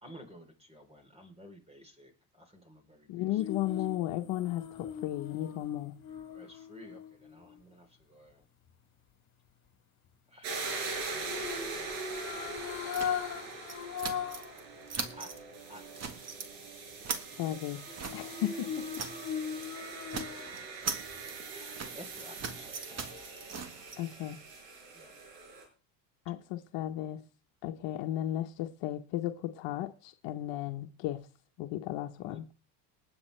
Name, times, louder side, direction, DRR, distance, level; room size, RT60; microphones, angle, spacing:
voice 1, 0.0-3.8 6.3-8.5 12.8-14.3 15.1-15.3 15.7-16.3 17.0-17.6 18.7-19.9 21.5-23.3 24.9-25.1 32.2-32.4, equal, 15° right, 3.7 m, -55 dB
voice 2, 3.1-6.0 17.4-17.9 18.1-18.8 24.0-24.4 26.3-27.2 27.6-31.3 31.6-32.4, left 13 dB, 65° left, 1.2 m, -35 dB
sound 1, 3.4-7.6 11.2-14.6 14.9-15.0 17.9-20.7 21.1-21.2, left 7 dB, 35° left, 3.7 m, -39 dB
sound 2, 10.4-25.6, right 4 dB, 80° right, 6.4 m, -42 dB
sound 3, 12.9-14.6 14.9-15.4 15.7-16.5 16.8-19.3 19.6-19.7 20.0-24.0, right 5 dB, 30° right, 1.8 m, -41 dB
20.0 x 8.3 x 3.4 m
supercardioid pair, 100°, 48 cm